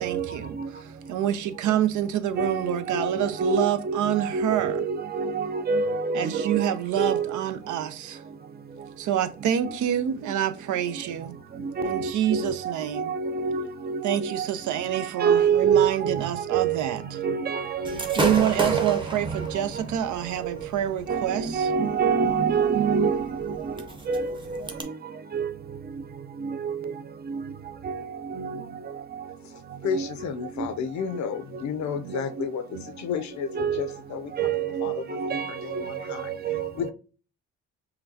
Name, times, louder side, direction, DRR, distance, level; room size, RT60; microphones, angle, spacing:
voice 1, 0.0-4.8 6.1-8.2 9.0-11.4 11.8-13.1 14.0-17.2 18.2-21.7, right 10 dB, 75° right, 0.6 m, -27 dB
voice 2, 2.4-6.7 7.0-7.4 11.6-12.6 13.0-14.3 14.8-16.2 16.5-16.8 17.2-19.0 21.1-23.6 24.1-24.4 25.3-25.5 26.4-26.8 27.3-27.4 27.8-28.0 28.3-28.6 29.9-30.1 30.4-30.5 32.1-32.2 33.5-33.8 34.4-36.9, right 6 dB, 35° right, 0.5 m, -26 dB
Gunshot gunfire / Fireworks, 17.8-24.8, right 2 dB, 15° right, 0.8 m, -34 dB
voice 3, 29.8-34.5 34.8-36.3 36.7-36.9, left 6 dB, 70° left, 0.6 m, -32 dB
5.7 x 2.2 x 2.7 m
cardioid pair, 90°, 30 cm